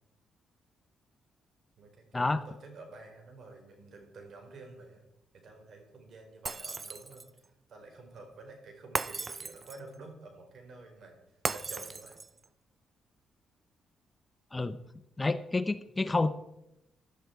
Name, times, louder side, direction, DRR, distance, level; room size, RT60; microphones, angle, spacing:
voice 1, 1.8-5.0 5.3-11.2 11.5-12.2, right 3 dB, 60° right, 3 dB, 4.6 m, -50 dB
Shatter, 6.5-7.4 9.0-9.9 11.5-12.5, right 4 dB, 35° right, 0.5 m, -36 dB
voice 2, 15.2-16.3, left 3 dB, 20° left, 13 dB, 0.8 m, -29 dB
16.0 x 11.0 x 4.7 m, 0.87 s
cardioid pair, 75°, 0 cm